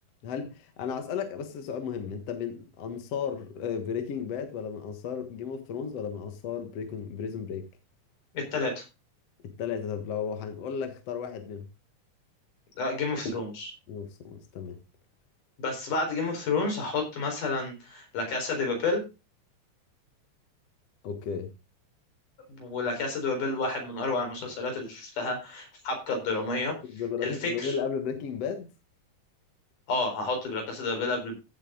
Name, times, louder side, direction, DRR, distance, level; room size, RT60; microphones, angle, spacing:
voice 1, 0.2-7.6 9.6-11.7 13.9-14.8 21.0-21.5 26.8-28.7, left 7 dB, 60° left, 2.3 m, -34 dB
voice 2, 8.3-8.8 12.8-13.7 15.6-19.0 22.6-26.7 27.2-27.7 29.9-31.4, left 3 dB, 80° left, 5.8 m, -30 dB
15.5 x 7.7 x 3.7 m
omnidirectional pair, 3.6 m